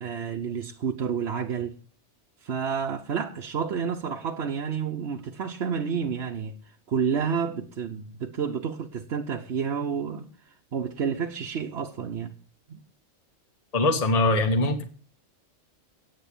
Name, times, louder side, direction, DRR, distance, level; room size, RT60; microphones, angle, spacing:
voice 1, 0.0-1.7 2.4-6.6 6.9-10.3 10.7-12.3 12.7-12.8, right 6 dB, 60° right, 1.1 m, -30 dB
voice 2, 13.7-14.8, left 2 dB, 30° left, 1.2 m, -22 dB
9.1 x 8.7 x 8.4 m
omnidirectional pair, 1.3 m